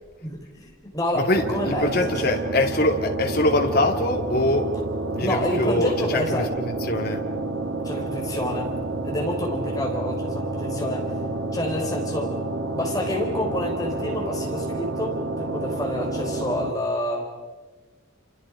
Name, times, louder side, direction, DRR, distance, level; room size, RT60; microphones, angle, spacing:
voice 1, 0.2-1.9 2.2-2.3 5.2-6.5 7.8-8.7 9.0-11.1 11.5-12.4 12.7-17.3, left 1 dB, 20° left, 4.3 m, -28 dB
voice 2, 1.1-4.8 5.1-7.2, left 1 dB, 50° left, 2.6 m, -23 dB
sound 1, 1.3-16.7, right 2 dB, 75° right, 1.9 m, -29 dB
29.5 x 28.0 x 5.1 m
head